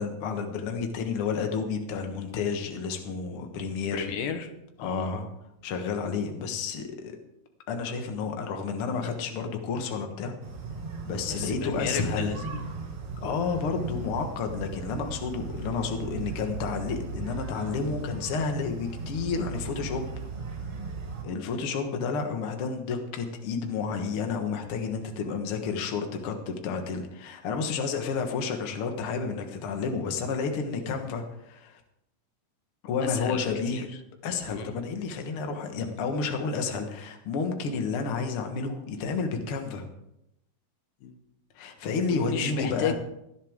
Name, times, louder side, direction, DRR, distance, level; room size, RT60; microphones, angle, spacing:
voice 1, 0.0-4.1 4.8-5.3 5.6-7.2 7.7-10.4 11.0-12.4 13.2-20.1 21.2-31.8 32.8-33.9 34.2-39.9 41.6-42.9, left 5 dB, 50° left, 4 dB, 1.9 m, -31 dB
voice 2, 3.9-5.1 11.3-12.7 33.0-33.9 34.5-34.8 41.0-41.1 42.1-42.9, left 7 dB, 85° left, 7 dB, 2.9 m, -33 dB
sound 1, 10.4-21.2, right 4 dB, 50° right, 3.2 m, -37 dB
18.0 x 11.0 x 3.7 m, 0.84 s
omnidirectional pair, 3.8 m